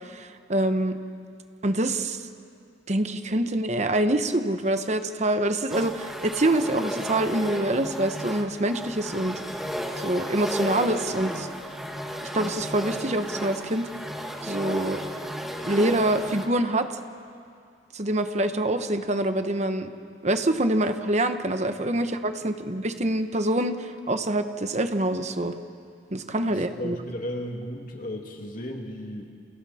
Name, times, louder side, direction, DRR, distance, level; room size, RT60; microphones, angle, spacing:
voice 1, 0.1-1.0 1.6-2.2 2.9-9.4 10.0-11.5 12.2-13.9 14.4-15.0 15.6-16.9 17.9-19.9 20.2-25.5 26.1-27.0, right 1 dB, 40° right, 8 dB, 1.1 m, -25 dB
sound 1, 5.7-16.5, equal, ahead, 1.7 m, -33 dB
voice 2, 26.5-29.3, left 1 dB, 50° left, 1 dB, 2.6 m, -35 dB
29.5 x 29.0 x 4.4 m, 2.4 s
head